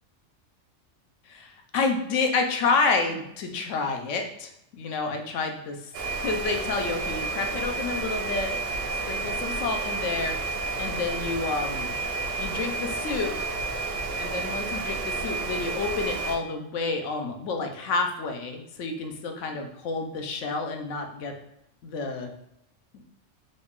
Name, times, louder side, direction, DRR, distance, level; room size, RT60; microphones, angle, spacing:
voice 1, 1.3-5.9 6.2-8.5 9.1-10.3 10.8-12.0 12.4-13.3 14.2-21.3 21.8-22.3, left 4 dB, 75° left, 3 dB, 0.9 m, -29 dB
sound 1, 5.9-16.4, right 3 dB, 80° right, 0.9 m, -31 dB
3.8 x 2.3 x 3.5 m, 0.79 s
omnidirectional pair, 1.3 m